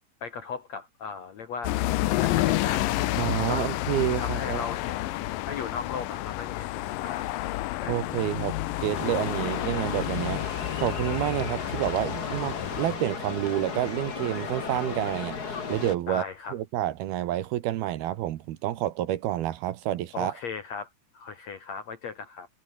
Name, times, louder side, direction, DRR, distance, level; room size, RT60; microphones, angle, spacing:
voice 1, 0.2-1.7 2.2-2.9 3.5-3.6 4.2-7.4 7.8-8.0 16.1-16.6 20.1-22.5, left 5 dB, 60° left, 1.9 m, -37 dB
sound 1, 1.6-13.0, left 17 dB, 80° left, 2.1 m, -30 dB
voice 2, 3.2-4.6 7.9-10.4 10.8-16.2 16.5-20.3, right 13 dB, 70° right, 2.9 m, -29 dB
sound 2, 8.9-15.9, left 5 dB, 35° left, 1.5 m, -35 dB
omnidirectional pair, 4.9 m